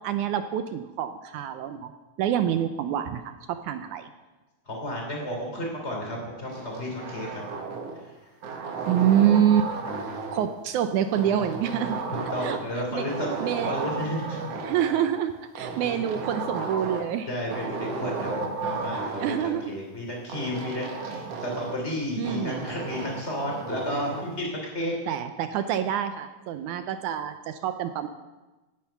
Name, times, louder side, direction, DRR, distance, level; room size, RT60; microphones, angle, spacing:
voice 1, 0.0-1.9 2.2-4.1 8.9-9.7 10.3-12.0 12.4-12.6 12.9-13.1 13.4-13.7 14.6-17.3 19.2-19.8 22.2-22.7 25.1-28.1, right 10 dB, 75° right, 9 dB, 2.0 m, -26 dB
voice 2, 4.7-7.4 7.9-8.1 12.1-14.4 15.9-16.0 17.3-24.9, left 1 dB, 20° left, 0 dB, 3.5 m, -32 dB
sound 1, 6.5-8.0 8.4-10.5 11.1-12.8 13.1-15.1 15.5-17.1 17.5-19.5 20.3-21.8 22.2-24.3, right 4 dB, 55° right, 2.2 m, -34 dB
17.5 x 9.6 x 5.9 m, 1.1 s
omnidirectional pair, 3.8 m